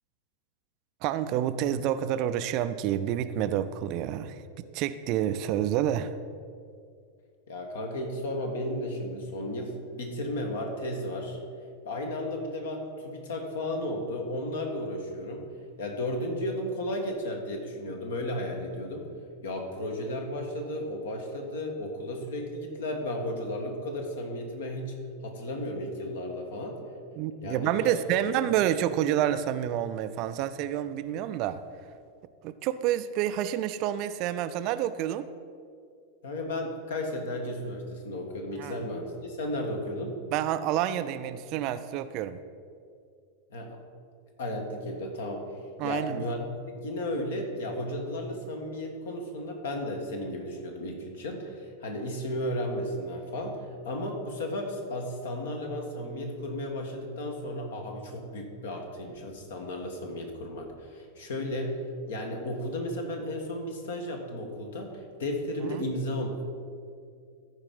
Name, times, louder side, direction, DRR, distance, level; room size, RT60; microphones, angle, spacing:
voice 1, 1.0-4.4 4.7-6.1 27.2-31.6 32.4-35.3 38.6-38.8 40.3-42.4 45.8-46.2, right 11 dB, 40° right, 12 dB, 0.4 m, -28 dB
voice 2, 7.5-11.4 11.8-15.5 15.8-19.1 19.4-26.8 27.4-28.2 28.4-28.5 36.2-40.2 43.5-43.8 44.4-61.8 62.1-66.4, left 1 dB, 60° left, 3 dB, 1.5 m, -34 dB
14.0 x 4.8 x 5.4 m, 2.3 s
figure-of-eight pair, 90°, 0 cm